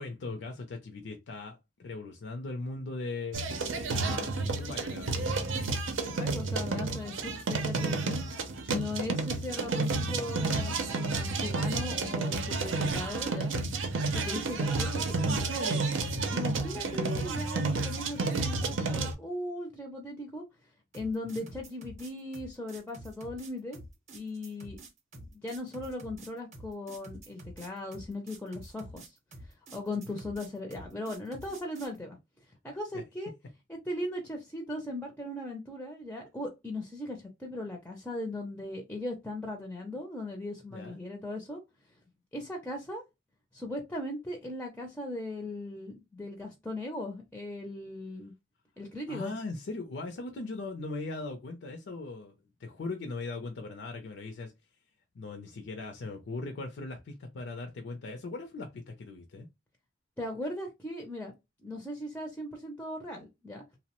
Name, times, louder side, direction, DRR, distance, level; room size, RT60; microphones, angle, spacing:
voice 1, 0.0-3.4 3.8-5.3 21.4-21.5 30.1-30.2 32.9-33.0 40.7-41.0 49.1-52.3 52.6-54.5 55.1-59.5, left 3 dB, 65° left, 0.4 m, -39 dB
sound 1, 3.3-19.1, right 3 dB, 85° right, 0.6 m, -31 dB
voice 2, 6.1-8.2 8.7-13.6 14.1-15.8 16.3-20.4 20.9-23.8 24.1-24.8 25.3-29.1 29.7-32.2 32.6-33.3 33.7-41.6 42.3-43.0 43.5-48.3 48.8-49.3 60.2-61.3 61.6-63.6, left 1 dB, 10° left, 0.4 m, -38 dB
sound 2, 20.9-32.0, right 1 dB, 40° right, 0.6 m, -48 dB
2.9 x 2.0 x 2.9 m
head